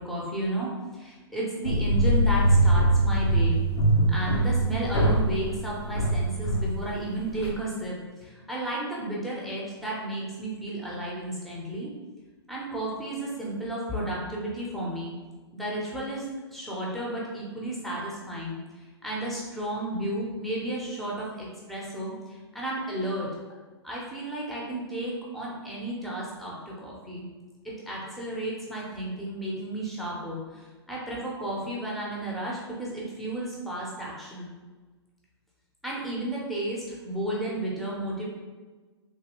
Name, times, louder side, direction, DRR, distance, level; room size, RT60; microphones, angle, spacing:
voice 1, 0.0-3.6 4.1-8.0 8.2-11.9 12.5-15.1 15.5-16.2 16.5-18.6 19.0-23.3 23.8-27.3 27.6-34.5 35.8-38.2, right 1 dB, ahead, -5 dB, 0.7 m, -33 dB
sound 1, 1.6-7.5, right 1 dB, 65° left, 0.7 m, -23 dB
3.3 x 2.7 x 3.0 m, 1.3 s
hypercardioid pair, 130°, 15 cm